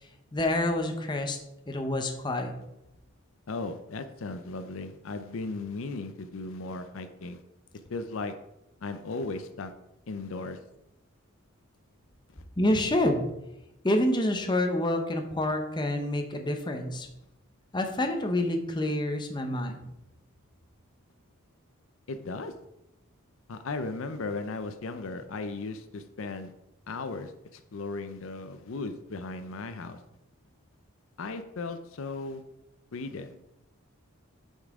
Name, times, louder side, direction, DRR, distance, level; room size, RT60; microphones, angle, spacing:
voice 1, 0.3-1.4 1.7-2.5 12.6-13.3 13.8-17.1 17.7-19.9, left 1 dB, 20° left, 4 dB, 0.7 m, -27 dB
voice 2, 3.5-7.4 7.9-8.3 8.8-9.7 10.1-10.6 22.1-22.5 23.5-26.5 26.9-30.0 31.2-32.4 32.9-33.3, left 3 dB, 65° left, 9 dB, 0.5 m, -36 dB
8.3 x 5.5 x 3.6 m, 0.88 s
head